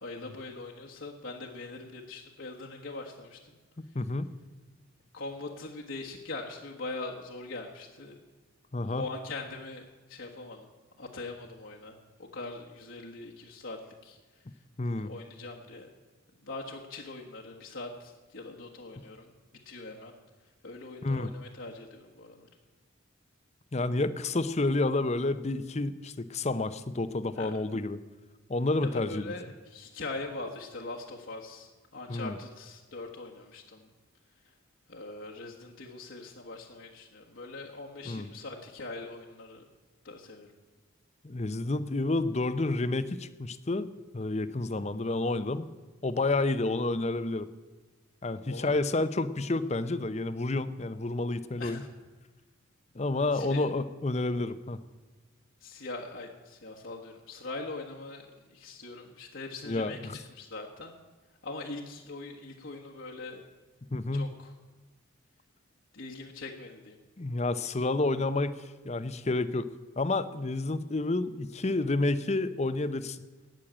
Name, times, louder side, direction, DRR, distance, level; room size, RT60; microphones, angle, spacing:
voice 1, 0.0-3.6 5.1-8.1 8.9-10.7 11.0-13.8 14.0-14.2 15.0-15.9 16.4-19.3 19.6-20.1 20.6-22.5 27.3-27.5 28.8-33.9 34.9-39.6 40.0-40.5 48.5-48.7 51.6-51.9 53.3-53.7 55.6-60.0 60.3-61.0 61.4-63.4 64.1-64.5 65.9-67.0, left 3 dB, 70° left, -2 dB, 1.5 m, -42 dB
voice 2, 3.9-4.3 8.7-9.0 14.8-15.1 21.0-21.3 23.7-28.0 28.5-29.2 32.1-32.4 38.1-38.3 41.2-43.9 44.1-45.7 46.0-47.5 48.2-51.8 52.9-54.8 59.7-60.2 63.9-64.3 67.2-69.7 70.0-73.2, left 2 dB, 30° left, 14 dB, 0.6 m, -29 dB
17.5 x 6.5 x 8.8 m, 1.3 s
head